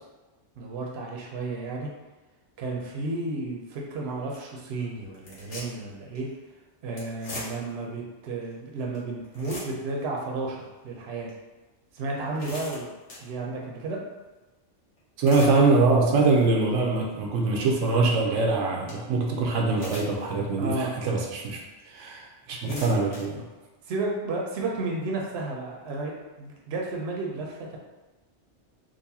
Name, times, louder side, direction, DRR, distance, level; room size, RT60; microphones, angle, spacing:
voice 1, 0.6-1.9 2.6-6.3 6.8-10.6 10.8-11.3 11.9-12.9 13.2-14.0 20.6-20.9 22.6-22.8 23.9-26.1 26.4-27.8, right 3 dB, 65° right, -1 dB, 0.9 m, -32 dB
sound 1, 3.8-3.9 4.3-4.5 5.1-5.9 6.1-6.3 7.0-7.8 8.4-8.5 8.9-9.0 9.2-10.0 10.5-10.6 11.3-11.4 12.0-13.3 15.0-15.6 16.1-16.4 16.9-17.0 18.5-18.6 18.9-19.0 19.7-20.3 20.8-20.9 21.8-21.9 22.4-23.2, left 1 dB, 75° left, 1.3 m, -40 dB
voice 2, 15.2-21.6 21.9-23.4, right 3 dB, 90° right, 0 dB, 0.9 m, -23 dB
3.9 x 2.5 x 2.7 m, 1.1 s
omnidirectional pair, 1.2 m